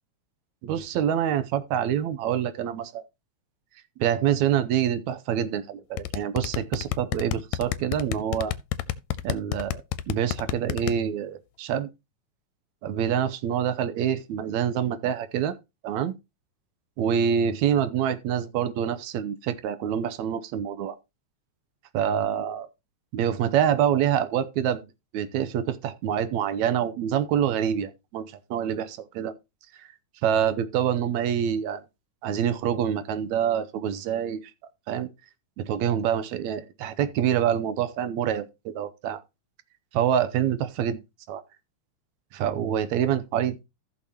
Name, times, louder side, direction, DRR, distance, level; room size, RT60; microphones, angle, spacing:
voice 1, 0.6-3.0 4.0-8.5 9.2-9.8 10.1-11.9 12.8-15.6 15.8-16.1 17.0-21.0 21.9-22.7 23.1-24.9 25.1-29.3 30.2-31.8 32.2-34.4 34.9-35.1 35.6-39.2 39.9-41.0 41.3-41.4 42.3-43.6, right 9 dB, 80° right, 2.1 m, -26 dB
sound 1, 6.0-10.9, left 13 dB, 85° left, 2.0 m, -28 dB
15.0 x 6.3 x 2.9 m
omnidirectional pair, 3.3 m